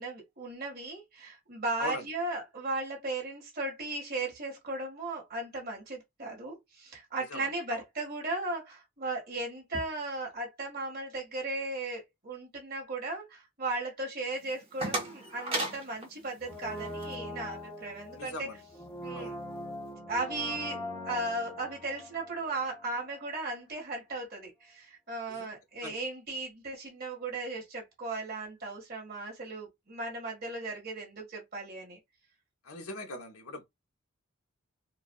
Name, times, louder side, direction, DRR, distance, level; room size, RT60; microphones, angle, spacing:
voice 1, 0.0-18.5 19.0-19.4 20.1-32.0, right 2 dB, 45° right, 1.8 m, -36 dB
voice 2, 7.3-7.8 18.1-18.6 19.1-19.3 25.3-25.5 25.8-26.0 32.6-33.6, left 1 dB, 85° left, 1.1 m, -40 dB
sound 1, 14.4-17.2, right 2 dB, 25° right, 1.1 m, -36 dB
Brass instrument, 16.4-23.3 23.5-23.6, left 1 dB, 15° left, 0.9 m, -42 dB
4.5 x 2.5 x 2.3 m
head